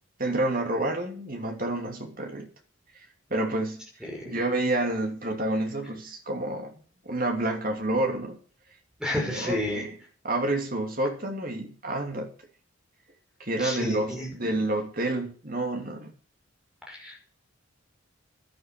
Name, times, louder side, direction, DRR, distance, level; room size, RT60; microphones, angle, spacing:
voice 1, 0.2-2.5 3.3-3.9 4.2-6.8 7.0-8.4 9.1-9.9 10.2-12.3 13.4-16.1, right 1 dB, 40° right, 2.9 m, -29 dB
voice 2, 4.0-4.3 9.0-9.8 13.6-14.3 16.9-17.2, left 1 dB, 5° right, 5.7 m, -31 dB
11.5 x 11.0 x 6.8 m
head